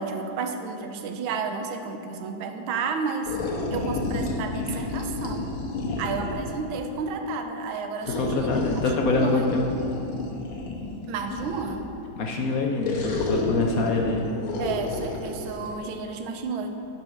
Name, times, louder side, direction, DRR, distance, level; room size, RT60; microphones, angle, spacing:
voice 1, 0.0-3.4 3.7-5.6 6.0-8.5 9.0-9.5 11.1-11.9 14.6-16.8, right 4 dB, 90° right, 5 dB, 1.5 m, -31 dB
sound 1, 3.2-6.6 8.0-11.9 12.8-15.7, left 2 dB, 85° left, 1.8 m, -31 dB
voice 2, 8.2-9.6 12.2-14.3, left 3 dB, 70° left, 1 dB, 0.8 m, -25 dB
8.7 x 5.3 x 5.9 m, 2.9 s
omnidirectional pair, 2.2 m